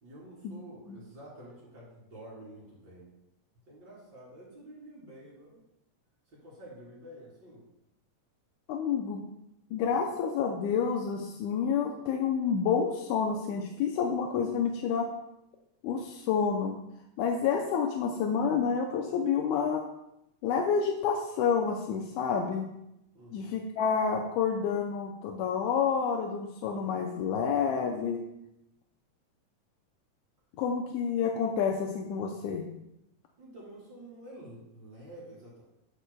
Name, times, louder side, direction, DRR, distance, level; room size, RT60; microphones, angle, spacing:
voice 1, 0.0-3.1 3.7-5.6 6.3-7.6 23.1-23.5 33.4-35.6, right 1 dB, 40° right, -6 dB, 3.4 m, -49 dB
voice 2, 8.7-9.2 9.7-15.1 15.8-16.8 17.2-19.8 20.4-22.7 23.3-28.2 30.6-32.7, left 6 dB, 85° left, 1 dB, 2.0 m, -29 dB
9.8 x 6.5 x 2.2 m, 0.83 s
omnidirectional pair, 3.5 m